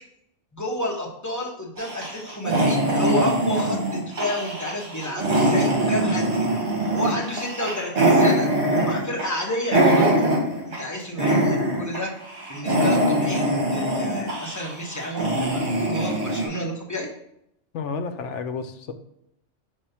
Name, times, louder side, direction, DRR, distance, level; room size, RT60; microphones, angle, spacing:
voice 1, 0.5-6.5 6.9-8.5 8.7-10.3 10.8-12.1 12.5-17.1, left 1 dB, 15° left, -3 dB, 1.2 m, -30 dB
sound 1, 1.8-10.9 11.2-12.0 12.3-16.5, right 1 dB, 60° right, 2.0 m, -22 dB
voice 2, 17.7-18.9, left 5 dB, 75° left, 8 dB, 0.9 m, -31 dB
5.3 x 3.3 x 5.6 m, 0.75 s
omnidirectional pair, 1.3 m